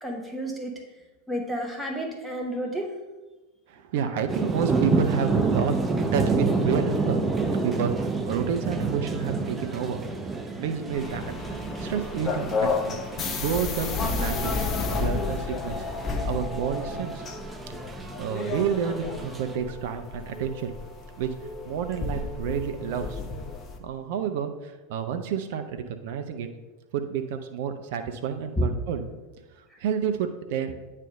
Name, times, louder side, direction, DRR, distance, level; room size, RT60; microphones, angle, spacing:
voice 1, 0.0-0.7 1.3-2.9 28.6-28.7, equal, ahead, -1 dB, 1.1 m, -30 dB
voice 2, 3.7-5.8 6.1-7.2 7.5-10.0 10.6-13.0 13.3-14.6 14.9-15.8 16.2-17.2 18.2-20.7 21.2-21.3 21.6-23.2 23.8-26.5 26.9-29.1 29.8-30.8, right 7 dB, 55° right, 7 dB, 0.5 m, -30 dB
sound 1, 4.3-19.6, right 3 dB, 15° right, 0.7 m, -29 dB
sound 2, 10.9-23.8, left 4 dB, 30° left, 0.8 m, -32 dB
9.1 x 3.3 x 5.1 m, 1.2 s
figure-of-eight pair, 85°, 0 cm